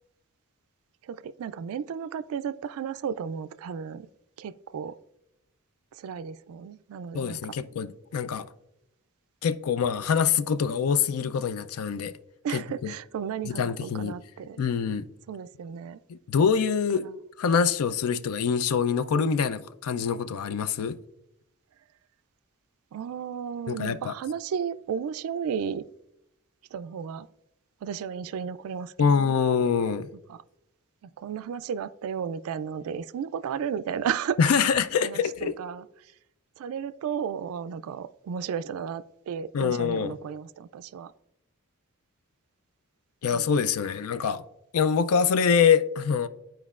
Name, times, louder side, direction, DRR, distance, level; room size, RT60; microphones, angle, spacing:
voice 1, 1.0-4.1 4.4-5.0 5.9-7.5 12.4-14.6 15.3-16.0 16.9-17.1 22.9-25.8 26.7-27.3 27.8-29.3 30.3-30.4 31.0-34.4 35.0-35.9 36.6-41.1 43.3-43.6, right 7 dB, 65° right, 0.3 m, -34 dB
voice 2, 7.1-8.5 9.4-12.1 12.5-12.9 13.5-14.2 14.6-15.1 16.1-17.1 17.4-21.0 23.7-24.1 29.0-30.1 34.4-35.5 39.5-40.1 43.2-44.4 44.7-46.3, left 6 dB, 70° left, 0.4 m, -25 dB
12.0 x 4.5 x 2.4 m
head